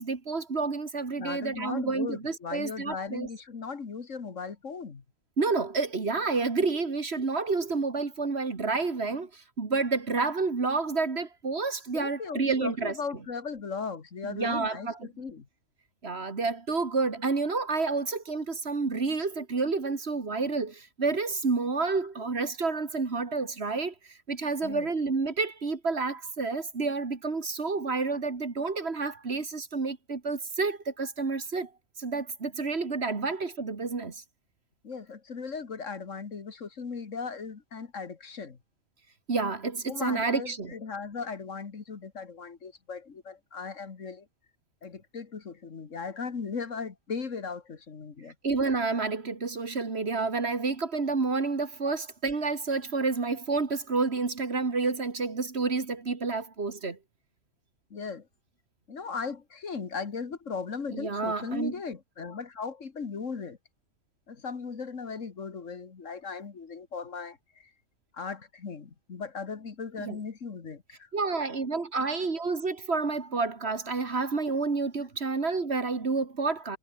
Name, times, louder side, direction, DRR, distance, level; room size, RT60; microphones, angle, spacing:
voice 1, 0.0-3.3 5.4-12.9 14.2-15.1 16.0-31.7 32.0-34.2 39.3-40.7 48.4-57.0 60.9-61.7 70.0-70.2 71.1-76.8, right 4 dB, 55° right, 2.3 m, -29 dB
voice 2, 1.2-5.0 11.9-15.5 24.6-24.9 34.8-38.6 39.9-44.3 44.8-48.3 57.9-58.3 58.9-63.6 64.3-67.4 68.1-71.1, left 5 dB, 70° left, 2.2 m, -37 dB
omnidirectional pair, 1.3 m